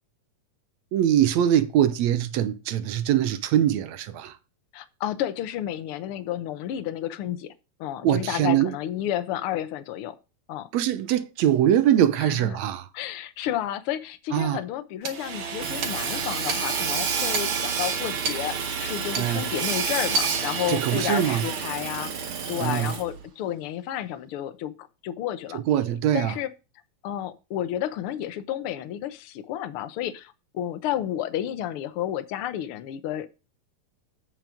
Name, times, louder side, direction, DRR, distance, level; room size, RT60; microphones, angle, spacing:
voice 1, 0.9-4.3 8.0-8.7 10.7-12.8 14.3-14.6 19.2-19.4 20.7-21.4 22.6-22.9 25.7-26.3, right 11 dB, 75° right, 2.0 m, -22 dB
voice 2, 4.7-7.5 7.8-10.2 10.5-10.7 12.2-12.5 12.9-25.6 26.1-26.5 27.0-33.3, left 11 dB, 65° left, 1.5 m, -31 dB
Hammer / Sawing, 15.0-23.2, right 5 dB, 50° right, 2.0 m, -29 dB
8.1 x 7.6 x 5.1 m
omnidirectional pair, 3.4 m